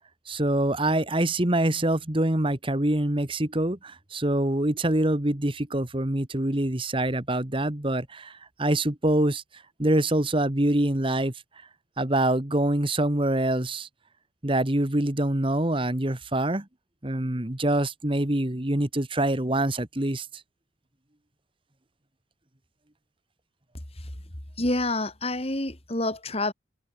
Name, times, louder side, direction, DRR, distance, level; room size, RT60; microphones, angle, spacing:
voice 1, 0.3-9.4 9.8-11.3 12.0-13.9 14.4-16.7 17.0-20.3, right 1 dB, 25° right, 1.6 m, -25 dB
voice 2, 24.6-26.5, left 2 dB, 30° left, 3.0 m, -27 dB
open air
head